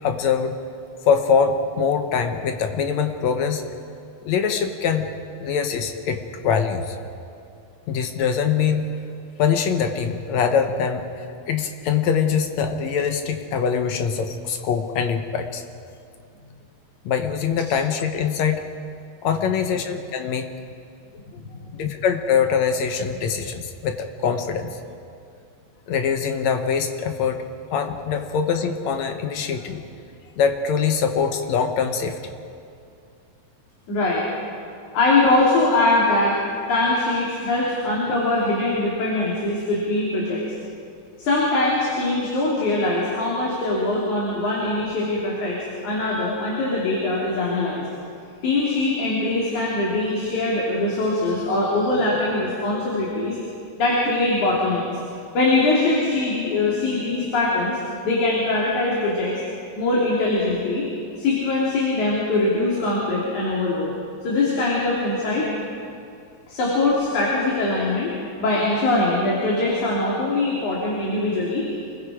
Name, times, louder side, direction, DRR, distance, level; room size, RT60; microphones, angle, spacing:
voice 1, 0.0-0.6 1.1-3.6 4.3-5.1 5.4-7.0 7.9-8.9 9.4-15.6 17.1-18.7 19.2-20.5 21.3-21.4 21.7-24.8 25.9-29.8 30.4-32.3, left 6 dB, 75° left, 6 dB, 2.3 m, -23 dB
voice 2, 33.9-34.2 34.9-36.4 36.7-40.4 41.2-47.8 48.4-53.4 53.8-54.9 55.3-57.8 58.0-59.4 59.8-60.8 61.2-63.9 64.2-65.5 66.5-68.1 68.4-71.9, left 2 dB, 90° left, -5 dB, 4.4 m, -22 dB
27.5 x 21.0 x 4.9 m, 2.4 s
omnidirectional pair, 3.3 m